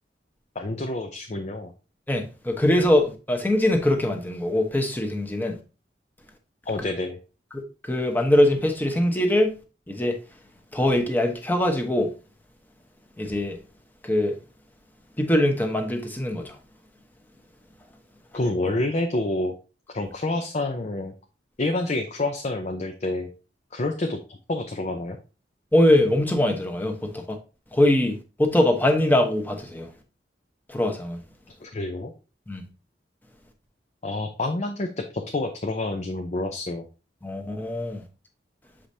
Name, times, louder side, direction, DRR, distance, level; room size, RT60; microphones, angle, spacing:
voice 1, 0.5-1.7 6.7-7.2 18.3-19.5 19.9-21.1 21.6-23.3 23.7-25.2 31.6-32.1 34.0-36.8, left 2 dB, 40° left, 0.6 m, -28 dB
voice 2, 2.1-5.6 7.5-7.6 7.9-9.5 9.9-10.2 10.7-12.1 13.2-13.6 14.0-14.4 15.2-16.6 25.7-27.4 27.7-29.9 30.7-31.2 32.5-32.6 37.2-38.0, left 1 dB, 10° left, 1.0 m, -22 dB
7.3 x 5.0 x 2.7 m
head